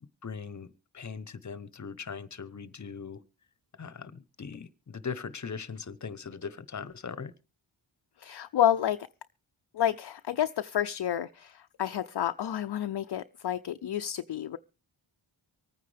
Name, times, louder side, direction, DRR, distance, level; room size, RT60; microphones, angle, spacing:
voice 1, 0.2-3.2 3.8-7.3, left 6 dB, 40° left, 1.0 m, -40 dB
voice 2, 8.2-9.1 9.7-14.6, left 11 dB, 55° left, 0.6 m, -29 dB
25.0 x 9.3 x 3.4 m
wide cardioid pair, 85°, 47 cm